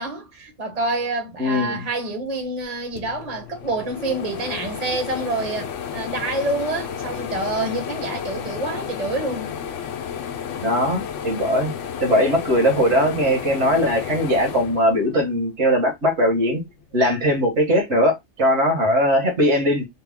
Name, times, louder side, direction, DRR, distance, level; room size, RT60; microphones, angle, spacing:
voice 1, 0.0-9.5, right 2 dB, 35° right, 1.2 m, -27 dB
voice 2, 1.4-1.8 10.6-11.7 12.0-16.6 16.9-19.9, equal, 70° right, 1.7 m, -20 dB
sound 1, 2.6-2.7 2.9-15.5 16.0-17.1, left 8 dB, 80° left, 1.0 m, -32 dB
3.5 x 2.3 x 3.5 m
omnidirectional pair, 1.3 m